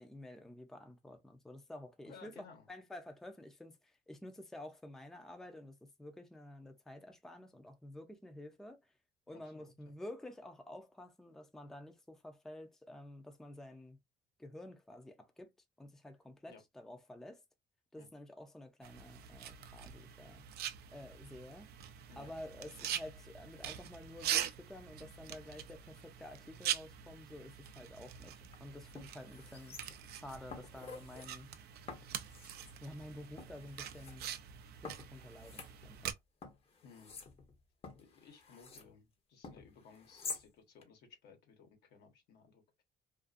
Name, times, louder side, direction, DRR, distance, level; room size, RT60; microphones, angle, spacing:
voice 1, 0.0-8.9 9.3-14.0 14.4-15.5 15.8-17.4 17.9-20.5 20.9-21.7 22.2-31.5 32.8-34.3 34.8-36.2, left 1 dB, 5° left, 0.5 m, -50 dB
voice 2, 2.0-2.7 9.3-9.9 16.5-16.6 18.0-18.1 22.1-22.3 36.8-37.1 38.0-42.8, left 5 dB, 75° left, 1.1 m, -59 dB
sound 1, 18.8-36.1, right 10 dB, 70° right, 0.4 m, -44 dB
sound 2, 28.4-28.6 29.0-30.2 30.5-31.3 31.9-32.8 33.4-34.2 34.8-36.1 36.4-38.9 39.4-40.5 40.8-40.9, left 4 dB, 35° left, 0.8 m, -49 dB
2.5 x 2.4 x 2.4 m
cardioid pair, 110°, 17 cm